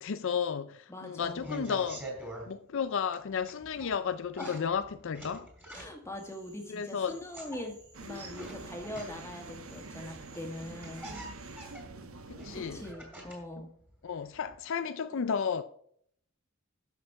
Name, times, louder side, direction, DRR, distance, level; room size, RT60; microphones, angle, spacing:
voice 1, 0.0-2.1 2.5-5.5 6.7-7.2 12.3-12.8 14.0-15.6, left 6 dB, 60° left, 0.4 m, -33 dB
voice 2, 0.9-1.5 4.4-4.6 5.7-11.1 12.5-13.7, left 1 dB, 15° left, 1.9 m, -42 dB
sound 1, 1.2-2.5 3.1-4.0 4.3-6.2 7.1-9.4 10.3-10.4 10.6-13.5 13.9-14.6, right 1 dB, 10° right, 3.4 m, -45 dB
Cricket / Frog, 6.1-11.7, right 2 dB, 50° right, 4.0 m, -59 dB
sound 2, 7.9-12.9, right 3 dB, 70° right, 1.1 m, -46 dB
13.0 x 6.5 x 4.7 m
head